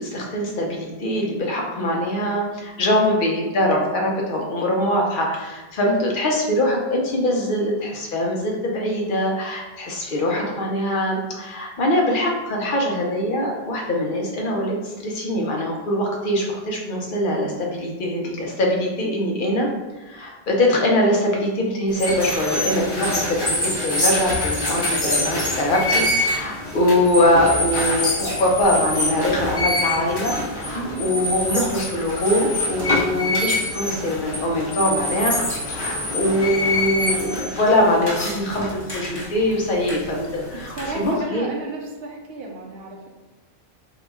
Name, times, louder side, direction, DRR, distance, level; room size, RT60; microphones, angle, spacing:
voice 1, 0.0-19.7 20.0-35.4 35.7-41.5, left 1 dB, 60° left, -1 dB, 0.8 m, -22 dB
sound 1, 21.9-41.2, left 1 dB, 25° left, 0.8 m, -25 dB
voice 2, 30.7-31.1 40.8-43.1, right 3 dB, 70° right, -1 dB, 0.9 m, -33 dB
2.8 x 2.3 x 4.0 m, 1.2 s
omnidirectional pair, 1.0 m